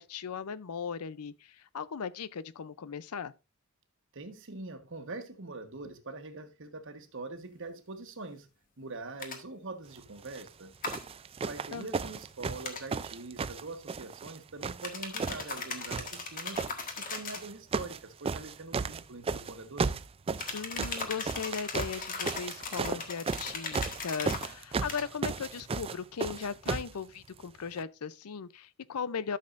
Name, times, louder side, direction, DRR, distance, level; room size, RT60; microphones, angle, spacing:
voice 1, 0.0-3.3 11.7-11.9 20.5-29.4, left 6 dB, 85° left, 0.5 m, -38 dB
voice 2, 4.1-8.5 8.8-10.7 11.5-16.6 17.0-20.0, right 3 dB, 60° right, 1.3 m, -43 dB
sound 1, 9.2-9.4 10.8-11.0 12.6-12.8 14.8-17.5 20.4-24.5 24.9-25.1, left 4 dB, 40° left, 1.6 m, -38 dB
sound 2, 10.2-10.5 10.9-14.4 14.6-15.6 15.9-16.7 17.4-18.0 18.2-26.9 27.8-27.9, right 4 dB, 25° right, 0.3 m, -34 dB
13.0 x 6.5 x 2.5 m
head